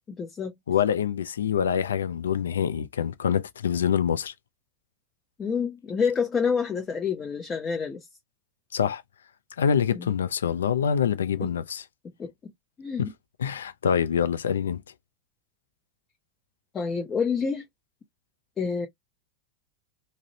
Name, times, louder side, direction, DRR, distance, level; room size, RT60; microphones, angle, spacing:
voice 1, 0.1-0.5 5.4-8.1 9.9-10.1 11.4-11.5 12.2-12.3 12.8-13.1 16.7-17.6 18.6-18.9, left 6 dB, 25° left, 0.6 m, -28 dB
voice 2, 0.7-4.3 8.7-9.0 9.6-11.8 13.0-13.1 13.4-14.8, left 8 dB, 85° left, 0.3 m, -25 dB
2.5 x 2.0 x 2.6 m
hypercardioid pair, 105°, 0 cm